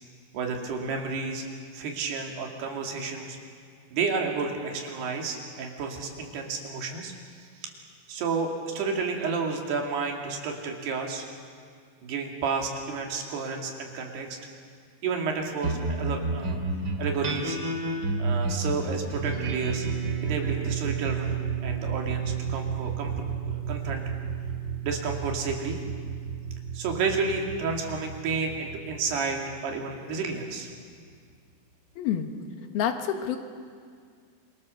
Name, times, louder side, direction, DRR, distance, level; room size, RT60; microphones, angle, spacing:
voice 1, 0.3-1.4 1.7-3.4 3.9-7.1 7.6-7.7 8.1-11.2 12.0-14.3 15.0-16.6 17.0-17.6 18.2-19.9 20.2-24.0 24.8-25.8 26.7-30.7, right 4 dB, 90° right, 2 dB, 4.6 m, -31 dB
sound 1, 15.6-30.3, right 4 dB, 35° right, 2.5 m, -31 dB
voice 2, 32.0-32.3 32.7-33.4, left 9 dB, 75° left, 6 dB, 3.3 m, -27 dB
28.5 x 23.5 x 7.0 m, 2.1 s
omnidirectional pair, 4.5 m